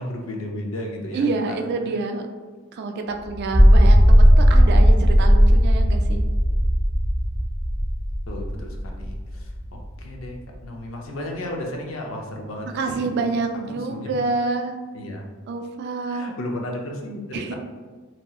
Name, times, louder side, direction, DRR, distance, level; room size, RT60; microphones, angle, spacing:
voice 1, 0.0-1.3 8.3-9.5 10.0-13.3 13.7-14.1 14.9-15.3 16.1-17.6, left 1 dB, 75° left, 1 dB, 0.5 m, -33 dB
voice 2, 1.1-2.3 2.7-6.2 12.7-14.7 15.5-16.3 17.3-17.6, right 3 dB, 55° right, 4 dB, 0.3 m, -27 dB
sound 1, 3.4-9.9, equal, 5° right, 0.7 m, -16 dB
2.8 x 2.7 x 2.3 m, 1.4 s
head